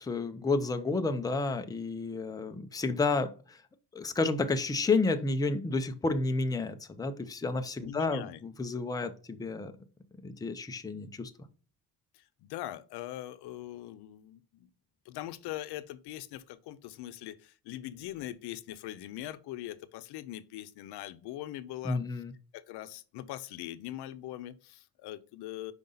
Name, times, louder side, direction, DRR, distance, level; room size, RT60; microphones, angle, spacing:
voice 1, 0.0-3.6 3.9-9.7 10.2-11.3 21.8-22.3, left 3 dB, 10° left, 0.5 m, -31 dB
voice 2, 7.8-8.4 12.1-14.7 15.1-22.2 22.5-25.7, left 14 dB, 85° left, 0.7 m, -42 dB
5.3 x 5.0 x 3.9 m
cardioid pair, 140°, 39 cm